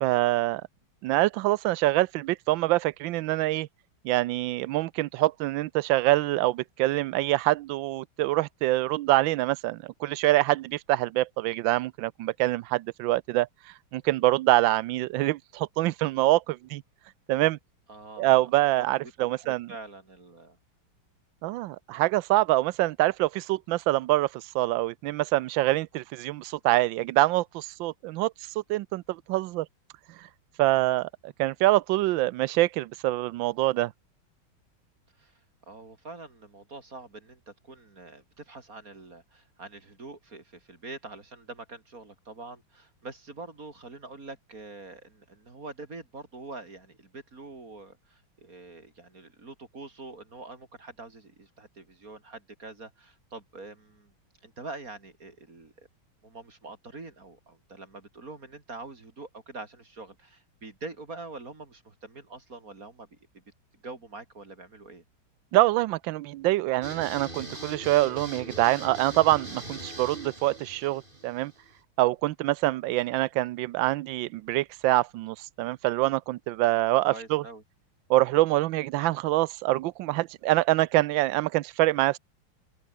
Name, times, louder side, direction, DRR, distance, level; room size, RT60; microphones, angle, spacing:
voice 1, 0.0-0.6 1.0-3.7 4.0-13.5 13.9-16.8 17.3-17.6 18.2-19.7 21.4-28.3 28.7-29.7 30.6-33.9 65.5-71.5 72.0-77.4 78.1-82.2, right 17 dB, 75° right, 1.3 m, -25 dB
voice 2, 17.9-18.5 18.8-20.6 35.2-35.4 35.7-54.1 54.4-55.9 56.2-63.1 63.3-63.4 63.7-65.0 77.0-77.6, right 3 dB, 40° right, 3.7 m, -44 dB
sound 1, 66.8-71.8, right 1 dB, 25° right, 7.1 m, -41 dB
open air
omnidirectional pair, 2.2 m